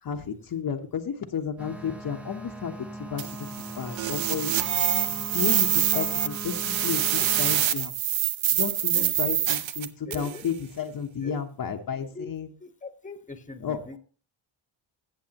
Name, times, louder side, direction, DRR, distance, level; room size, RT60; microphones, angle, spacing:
voice 1, 0.0-2.7 3.0-3.2 3.8-4.5 5.1-7.9 8.5-12.5 13.6-14.0, left 7 dB, 45° left, 3 dB, 1.1 m, -32 dB
sound 1, 1.6-7.6, right 1 dB, 5° right, 0.8 m, -40 dB
sound 2, 3.2-10.4, right 10 dB, 70° right, 0.9 m, -26 dB
voice 2, 10.1-10.5 11.2-11.4 12.1-12.3 12.6-14.0, left 3 dB, 15° left, 8 dB, 1.3 m, -41 dB
16.5 x 6.9 x 2.9 m, 0.38 s
cardioid pair, 90°, 48 cm